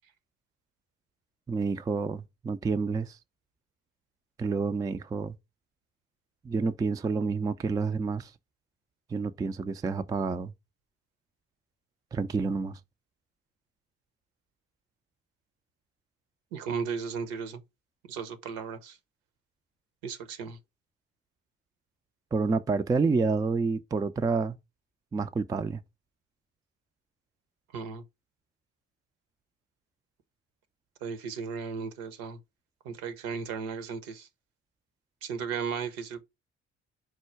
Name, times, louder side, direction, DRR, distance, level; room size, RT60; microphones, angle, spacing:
voice 1, 1.5-3.2 4.4-5.3 6.4-8.3 9.1-10.5 12.1-12.8 22.3-24.6 25.1-25.8, right 4 dB, 10° right, 0.3 m, -29 dB
voice 2, 16.5-17.6 18.1-19.0 20.0-20.6 27.7-28.0 31.0-32.4 32.8-34.3 35.2-36.2, right 6 dB, 70° right, 0.8 m, -35 dB
4.6 x 2.2 x 4.4 m
hypercardioid pair, 45°, 35 cm